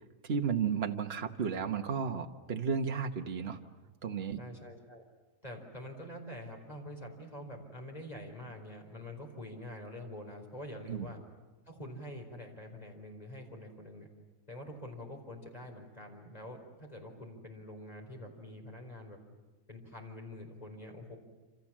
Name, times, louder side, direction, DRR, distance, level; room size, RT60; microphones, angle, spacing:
voice 1, 0.2-3.6 4.0-4.4 10.9-11.1, right 6 dB, 45° right, 5 dB, 1.4 m, -33 dB
voice 2, 4.4-5.0 5.4-11.2 11.7-14.1 14.5-19.2 19.7-21.2, left 1 dB, 25° left, 2 dB, 4.6 m, -46 dB
27.5 x 27.0 x 7.4 m, 1.2 s
omnidirectional pair, 1.5 m